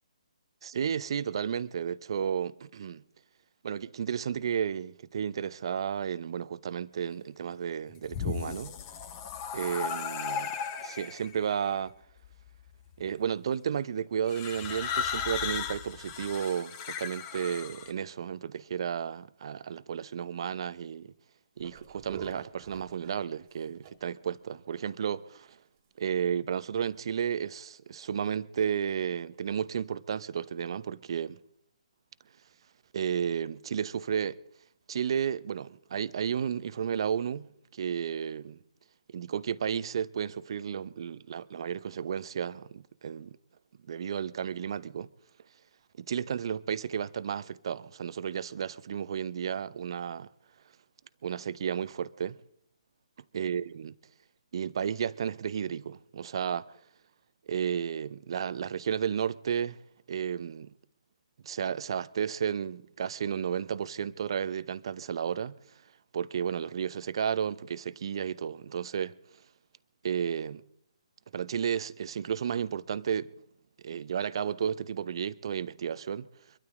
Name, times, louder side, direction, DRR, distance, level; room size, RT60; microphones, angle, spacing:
voice 1, 0.6-3.0 3.6-8.7 9.5-10.5 10.8-11.9 13.0-21.1 21.6-25.5 26.0-31.4 32.9-34.4 34.9-38.6 39.1-43.4 43.9-45.1 46.0-50.3 51.2-52.4 53.3-54.0 54.5-56.7 57.5-59.8 60.1-60.7 61.4-65.6 66.1-69.1 70.0-70.6 71.3-73.3 73.8-76.3, right 8 dB, 50° right, 0.8 m, -32 dB
sound 1, 7.9-11.3 12.2-12.7 14.3-17.9, left 7 dB, 25° left, 1.4 m, -36 dB
sound 2, 21.6-23.9 24.2-24.3 24.7-24.9 25.3-25.5 26.1-26.2 26.8-27.0, right 8 dB, 30° right, 2.0 m, -48 dB
24.5 x 12.5 x 3.8 m
figure-of-eight pair, 140°, 3 cm